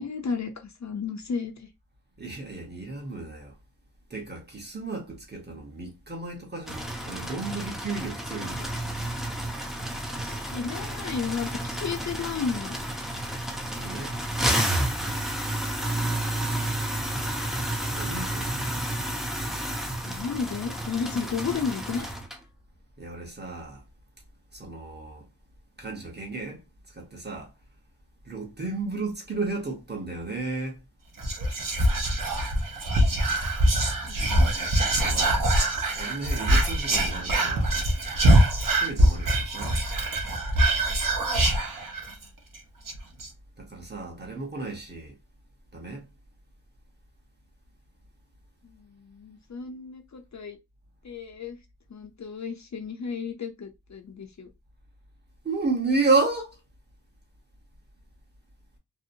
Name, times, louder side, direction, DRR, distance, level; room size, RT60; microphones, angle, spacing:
voice 1, 0.0-1.7 10.2-12.8 20.1-22.1 48.6-50.6 51.0-51.6 51.9-54.5, left 5 dB, 45° left, 0.5 m, -33 dB
voice 2, 2.2-3.5 4.1-8.7 13.6-14.1 17.9-18.6 23.0-23.8 24.5-25.2 25.8-26.6 26.9-27.5 28.3-30.8 35.0-35.5 35.9-37.8 38.8-39.8 43.6-45.1 45.7-46.1 55.4-56.6, right 3 dB, 25° right, 0.9 m, -32 dB
sound 1, 6.7-22.4, right 1 dB, ahead, 0.5 m, -31 dB
Whispering, 31.2-42.2 42.5-42.6 42.9-43.3, right 1 dB, 55° right, 0.7 m, -23 dB
2.7 x 2.0 x 2.6 m
wide cardioid pair, 100°, 39 cm